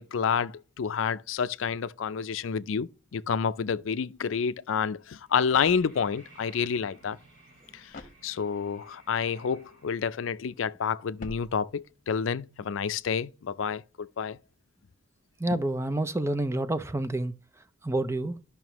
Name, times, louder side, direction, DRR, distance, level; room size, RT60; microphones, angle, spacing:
voice 1, 0.0-7.2 8.2-14.4, left 6 dB, 75° left, 0.4 m, -29 dB
sound 1, 4.5-12.9 13.1-13.2, right 1 dB, 65° right, 3.9 m, -58 dB
sound 2, 5.5-6.3 7.9-8.8 11.2-12.1, left 2 dB, 40° left, 1.0 m, -47 dB
voice 2, 15.4-17.3 17.8-18.4, right 2 dB, 15° right, 0.4 m, -28 dB
12.5 x 5.7 x 3.0 m
head